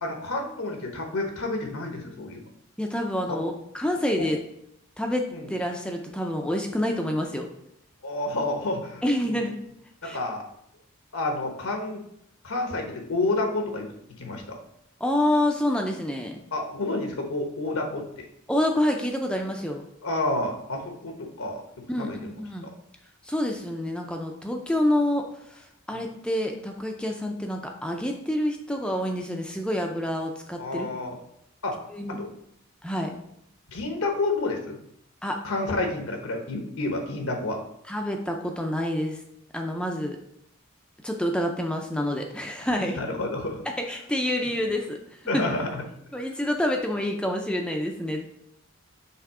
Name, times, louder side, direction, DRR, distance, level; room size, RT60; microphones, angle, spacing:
voice 1, 0.0-2.4 3.3-3.4 4.2-4.3 5.3-5.4 8.0-9.4 10.0-10.4 11.1-12.0 12.4-13.9 14.2-14.6 16.5-18.3 20.0-21.1 21.4-21.6 22.0-22.2 25.9-26.0 30.6-31.2 31.6-31.8 32.2-32.3 33.7-34.8 35.4-37.6 43.0-43.6 45.3-45.8, left 2 dB, 80° left, 3 dB, 1.1 m, -29 dB
voice 2, 2.8-4.4 5.0-7.5 9.0-9.6 10.0-10.2 15.0-16.4 18.5-19.8 21.9-22.7 23.2-30.9 31.9-32.2 32.8-33.1 35.2-35.4 37.9-39.2 39.5-40.2 41.0-43.0 43.7-45.0 45.3-45.4 46.1-48.2, left 1 dB, 5° left, 2 dB, 0.5 m, -27 dB
5.7 x 3.5 x 4.8 m, 0.74 s
head